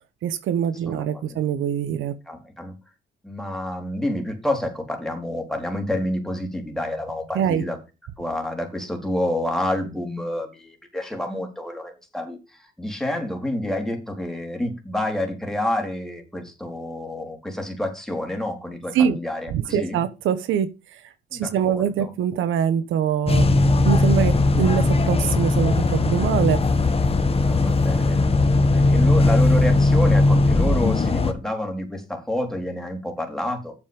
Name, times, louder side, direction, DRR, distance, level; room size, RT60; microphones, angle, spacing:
voice 1, 0.2-2.2 7.3-7.6 18.9-19.2 19.5-23.5 23.8-26.6, right 9 dB, 80° right, 1.1 m, -24 dB
voice 2, 2.3-2.7 3.2-7.8 8.2-20.0 21.3-22.1 27.4-28.2 28.6-33.7, left 1 dB, ahead, 4.0 m, -28 dB
sound 1, 23.3-31.3, left 2 dB, 30° left, 1.7 m, -18 dB
8.3 x 7.4 x 5.3 m
cardioid pair, 90°, 20 cm